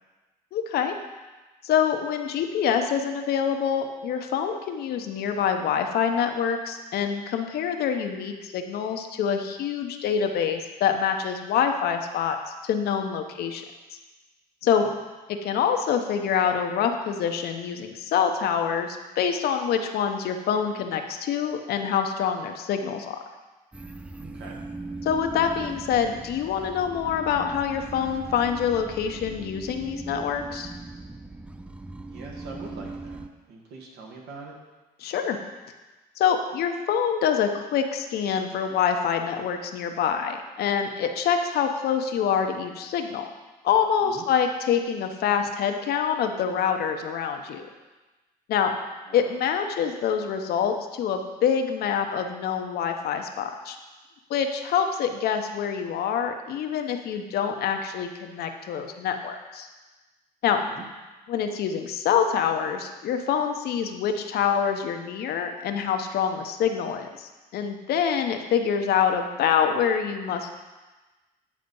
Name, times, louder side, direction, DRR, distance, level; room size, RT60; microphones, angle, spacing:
voice 1, 0.5-1.0 1.6-13.6 14.6-14.9 15.3-23.2 25.0-30.7 35.0-35.4 36.2-43.3 43.6-47.7 48.5-48.7 49.1-53.8 54.3-59.7 60.4-60.6 61.3-70.6, left 7 dB, 70° left, 5 dB, 0.8 m, -26 dB
voice 2, 14.6-14.9 24.2-24.6 32.1-34.6 44.0-44.3 49.1-49.3 60.6-60.8, right 4 dB, 75° right, -1 dB, 1.7 m, -43 dB
sound 1, 23.7-33.3, right 3 dB, 5° right, 0.4 m, -39 dB
9.3 x 4.2 x 5.3 m, 1.2 s
cardioid pair, 110°, 17 cm